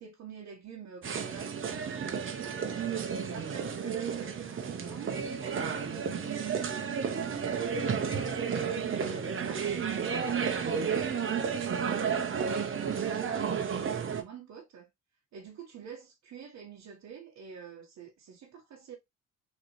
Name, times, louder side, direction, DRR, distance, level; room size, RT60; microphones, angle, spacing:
voice 1, 0.0-2.6 3.1-7.6 8.4-14.9 15.3-19.0, right 6 dB, 65° right, 1.2 m, -47 dB
sound 1, 1.0-14.2, right 6 dB, 45° right, 1.0 m, -32 dB
4.0 x 3.2 x 3.0 m
cardioid pair, 90°, 30 cm